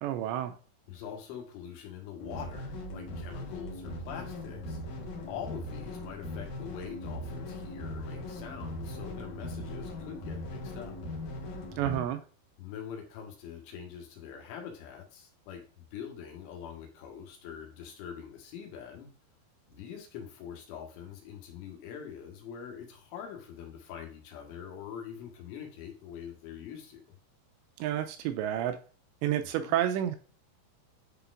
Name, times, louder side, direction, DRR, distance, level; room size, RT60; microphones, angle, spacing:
voice 1, 0.0-0.6 11.8-12.2 27.8-28.8 29.2-30.2, right 11 dB, 85° right, 2.7 m, -30 dB
voice 2, 0.9-4.8 5.3-10.9 12.6-19.1 19.7-27.0 29.6-29.8, left 8 dB, 85° left, 3.9 m, -44 dB
sound 1, 2.2-12.0, left 1 dB, 65° left, 1.9 m, -39 dB
9.9 x 4.1 x 2.5 m
omnidirectional pair, 5.3 m